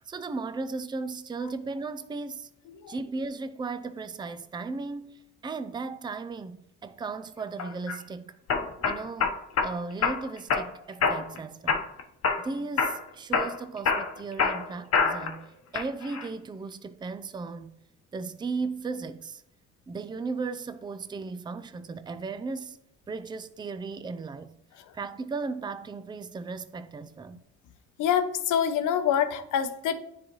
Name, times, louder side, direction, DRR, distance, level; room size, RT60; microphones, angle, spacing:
voice 1, 0.1-2.5 2.9-8.4 8.8-11.9 12.4-15.5 15.7-17.7 18.1-19.4 19.9-22.8 23.1-24.5 24.9-27.4, right 4 dB, 15° right, 0.4 m, -36 dB
sound 1, 7.6-8.0 8.5-9.7 10.0-10.7 11.0-11.4 11.7-12.5 12.8-13.0 13.3-15.4 15.7-16.3, left 5 dB, 55° left, 0.9 m, -26 dB
voice 2, 28.0-30.0, left 8 dB, 80° left, 0.7 m, -26 dB
9.7 x 4.0 x 3.0 m
cardioid pair, 90°, 30 cm